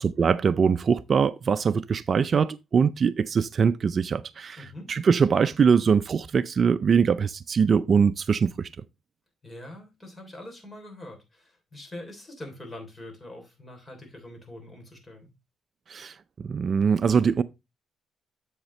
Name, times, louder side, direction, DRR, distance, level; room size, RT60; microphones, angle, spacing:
voice 1, 0.0-8.7 15.9-16.1 16.5-17.4, right 6 dB, 40° right, 0.4 m, -22 dB
voice 2, 4.6-4.9 9.4-15.3, left 1 dB, 20° left, 3.2 m, -43 dB
7.7 x 7.3 x 3.1 m
cardioid pair, 120°, 0 cm